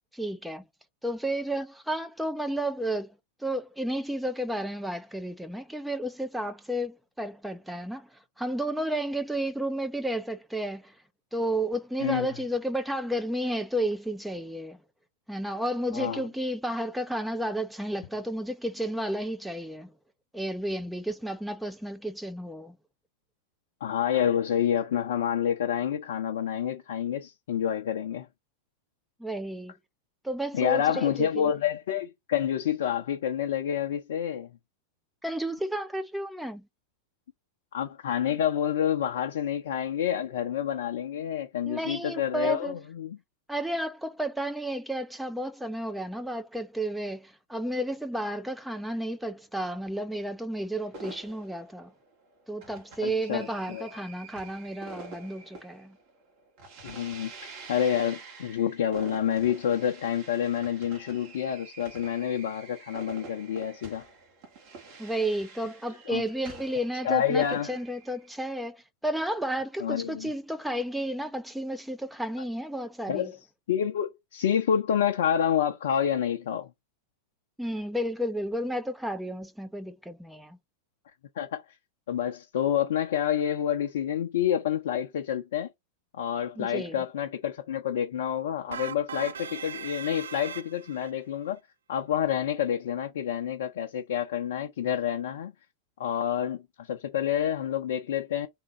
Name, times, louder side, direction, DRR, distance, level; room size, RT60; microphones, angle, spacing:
voice 1, 0.1-0.6 1.0-3.1 3.4-8.1 8.4-10.9 11.3-14.8 15.3-19.9 20.3-22.8 29.2-29.7 30.2-31.5 35.2-36.6 41.6-42.7 43.5-51.9 52.5-56.0 65.0-73.3 77.6-80.6 86.6-87.0, right 1 dB, 5° right, 0.6 m, -32 dB
voice 2, 15.9-16.3 23.8-28.3 30.5-34.5 37.7-43.2 53.0-53.9 56.8-64.0 66.1-66.2 67.0-67.8 69.8-70.3 73.1-73.4 73.7-76.7 81.4-81.6 82.1-85.7 86.1-91.6 91.9-95.5 96.0-98.5, left 9 dB, 60° left, 0.6 m, -28 dB
sound 1, 50.9-68.5, right 4 dB, 50° right, 1.8 m, -47 dB
sound 2, 88.7-91.1, right 7 dB, 65° right, 0.4 m, -38 dB
3.7 x 3.6 x 2.9 m
figure-of-eight pair, 90°, 0 cm